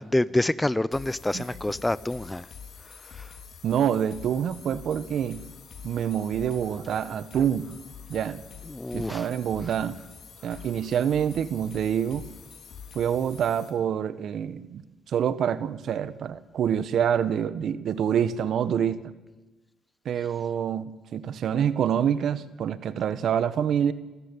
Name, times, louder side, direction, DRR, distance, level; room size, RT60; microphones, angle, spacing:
voice 1, 0.0-2.5 2.9-3.3 8.7-9.3, left 1 dB, 10° left, 19 dB, 0.6 m, -27 dB
sound 1, 0.9-13.7, left 6 dB, 60° left, 3.4 m, -46 dB
voice 2, 3.6-5.4 5.8-7.8 8.1-8.4 8.9-10.0 10.4-12.2 12.9-14.8 15.1-19.0 20.0-23.9, right 8 dB, 65° right, 15 dB, 1.3 m, -26 dB
26.0 x 13.0 x 9.8 m, 1.1 s
cardioid pair, 90°, 0 cm